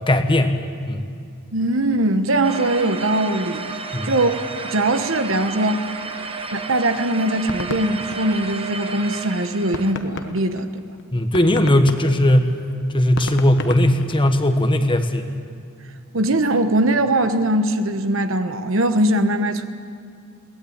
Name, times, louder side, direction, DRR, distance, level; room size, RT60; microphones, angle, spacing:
voice 1, 0.1-0.5 0.9-1.1 3.9-4.2 11.1-12.5 12.9-15.3, left 1 dB, 25° left, 7 dB, 1.3 m, -18 dB
voice 2, 1.5-3.7 4.0-4.4 4.6-5.8 6.5-10.8 16.1-19.7, right 1 dB, 65° right, 9 dB, 1.2 m, -21 dB
sound 1, 2.4-9.9, right 4 dB, 25° right, 1.1 m, -32 dB
sound 2, 6.9-9.0 9.4-9.5 9.7-14.6, left 3 dB, 55° left, 1.1 m, -33 dB
22.0 x 18.5 x 8.8 m, 2.3 s
head